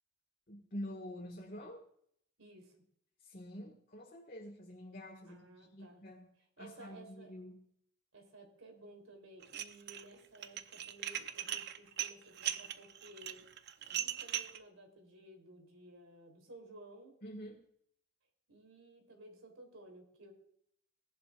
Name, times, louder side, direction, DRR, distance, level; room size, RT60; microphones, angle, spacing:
voice 1, 0.5-1.9 3.2-6.3 6.6-7.6 17.2-17.6, equal, 45° left, 0 dB, 1.6 m, -47 dB
voice 2, 2.4-2.7 5.3-6.0 6.6-7.3 8.1-13.4 13.9-17.1 18.5-20.3, right 1 dB, 85° right, 4 dB, 3.2 m, -56 dB
Dishes pots and pans, 9.4-10.0 10.3-14.6, right 10 dB, 55° right, 0.6 m, -39 dB
17.5 x 11.5 x 2.4 m, 0.67 s
head